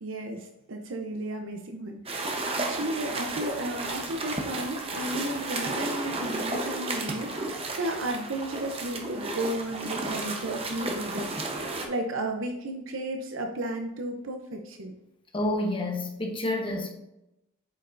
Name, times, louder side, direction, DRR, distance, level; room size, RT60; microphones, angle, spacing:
voice 1, 0.0-14.9, right 1 dB, 75° right, 3 dB, 0.7 m, -34 dB
sound 1, 2.1-11.9, right 2 dB, 30° right, 0.8 m, -33 dB
voice 2, 15.3-16.9, left 1 dB, 25° left, 1 dB, 1.0 m, -29 dB
8.2 x 5.4 x 2.6 m, 0.89 s
head